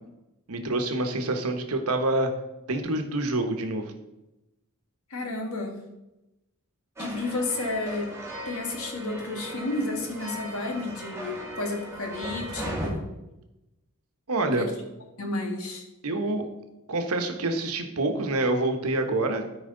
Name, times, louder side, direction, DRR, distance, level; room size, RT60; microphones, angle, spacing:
voice 1, 0.5-2.3 2.7-3.9 14.3-14.7 16.0-16.5 16.9-19.4, right 2 dB, 85° right, 5 dB, 1.2 m, -26 dB
voice 2, 5.1-5.8 7.0-8.1 8.5-13.1 14.6-14.7 15.2-15.8, left 2 dB, 70° left, 3 dB, 1.7 m, -31 dB
sound 1, 7.0-12.9, right 1 dB, 15° right, 2.2 m, -37 dB
13.0 x 4.9 x 3.9 m, 0.95 s
head